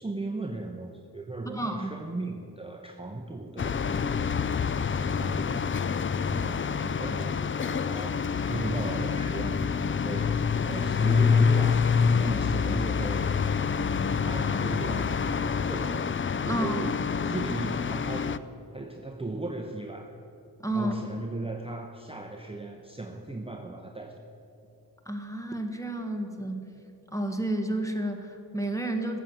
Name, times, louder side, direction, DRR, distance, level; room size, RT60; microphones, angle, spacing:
voice 1, 0.0-4.3 4.8-5.8 6.3-10.4 10.7-11.8 12.2-13.3 13.8-16.1 16.4-20.1 20.7-24.2, right 2 dB, 15° right, 2 dB, 0.9 m, -36 dB
voice 2, 1.5-1.9 16.5-16.8 20.6-20.9 25.0-26.7 27.1-29.2, right 1 dB, 10° left, 4 dB, 1.5 m, -31 dB
sound 1, 3.6-18.4, left 6 dB, 35° left, 0.4 m, -27 dB
14.5 x 7.3 x 7.7 m, 2.9 s
cardioid pair, 55°, 39 cm